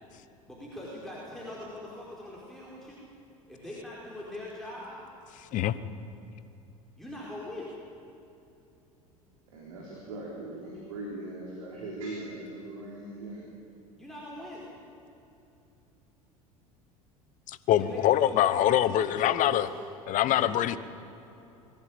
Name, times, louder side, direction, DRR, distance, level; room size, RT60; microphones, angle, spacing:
voice 1, 0.5-3.1 3.5-5.0 7.0-7.7 14.0-14.7 17.6-19.8 20.2-20.6, left 1 dB, ahead, -6 dB, 4.7 m, -41 dB
voice 2, 9.5-13.4, right 2 dB, 70° right, -2 dB, 3.8 m, -40 dB
voice 3, 17.5-19.7 20.1-20.8, left 12 dB, 45° left, 15 dB, 1.1 m, -24 dB
22.0 x 16.0 x 8.8 m, 2.8 s
figure-of-eight pair, 70°, 18 cm